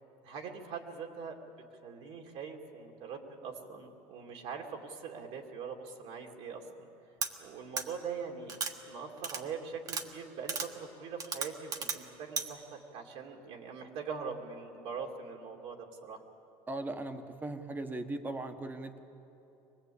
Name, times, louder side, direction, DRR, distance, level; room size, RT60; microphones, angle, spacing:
voice 1, 0.2-1.4 1.8-6.9 7.4-16.2, right 6 dB, 60° right, 1 dB, 2.4 m, -42 dB
sound 1, 7.2-7.3 7.8-7.9 8.5-8.7 9.2-9.4 9.9-10.0 10.5-10.7 11.2-12.0 12.4-12.5, right 5 dB, 30° right, 1.4 m, -34 dB
voice 2, 16.7-19.0, right 2 dB, 15° right, 7 dB, 1.3 m, -38 dB
23.5 x 20.0 x 8.5 m, 2.9 s
cardioid pair, 150°, 12 cm